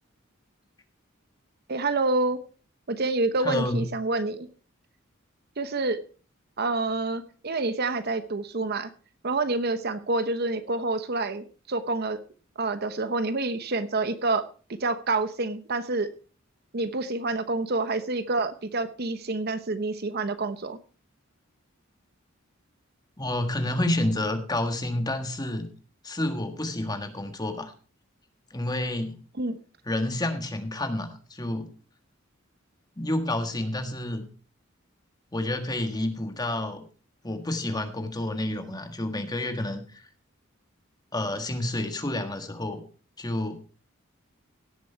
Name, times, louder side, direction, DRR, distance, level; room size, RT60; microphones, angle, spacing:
voice 1, 1.7-2.4 2.9-4.5 5.6-6.0 6.6-8.9 9.2-12.2 12.6-14.5 14.8-16.1 16.7-20.8 29.4-29.6, right 3 dB, 50° right, 12 dB, 0.9 m, -27 dB
voice 2, 3.4-3.8 23.2-25.7 26.0-27.7 28.5-29.1 29.9-31.7 33.0-34.2 35.3-36.8 37.2-40.0 41.1-42.8 43.2-43.6, left 1 dB, 20° left, 7 dB, 1.5 m, -29 dB
17.0 x 7.6 x 4.5 m, 0.38 s
head